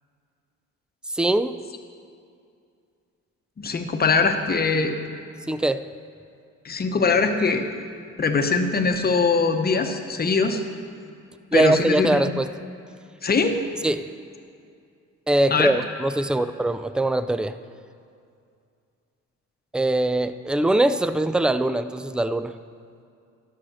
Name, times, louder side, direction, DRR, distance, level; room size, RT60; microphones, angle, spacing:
voice 1, 1.1-1.6 5.5-5.9 11.5-12.5 13.8-14.1 15.3-17.6 19.7-22.5, right 1 dB, 5° right, 12 dB, 0.3 m, -22 dB
voice 2, 3.6-4.9 6.6-7.6 8.2-10.6 11.5-12.2 13.2-13.6 15.5-15.8, left 4 dB, 30° left, 6 dB, 1.0 m, -22 dB
12.5 x 5.8 x 6.3 m, 2.4 s
cardioid pair, 90°, 30 cm